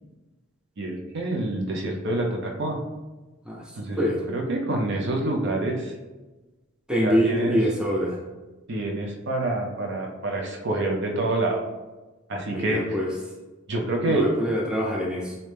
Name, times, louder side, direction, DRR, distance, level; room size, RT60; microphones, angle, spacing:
voice 1, 0.8-2.8 3.8-5.9 7.0-7.6 8.7-11.6 12.3-13.0 13.7-14.3, right 2 dB, 60° right, 1 dB, 0.6 m, -27 dB
voice 2, 6.9-8.2 12.5-13.1 14.1-15.4, equal, 5° right, -3 dB, 0.5 m, -25 dB
3.1 x 2.7 x 3.3 m, 1.2 s
head